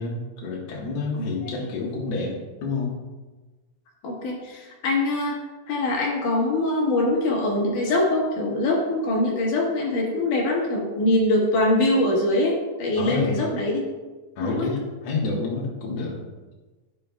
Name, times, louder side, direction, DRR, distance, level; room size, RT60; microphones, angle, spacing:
voice 1, 0.0-2.9 13.0-13.4 14.4-16.2, left 3 dB, 60° left, -3 dB, 2.3 m, -29 dB
voice 2, 1.2-1.5 4.0-5.4 5.7-13.8 14.4-14.7, left 2 dB, 75° left, -2 dB, 2.9 m, -23 dB
16.0 x 5.4 x 2.3 m, 1.3 s
omnidirectional pair, 3.8 m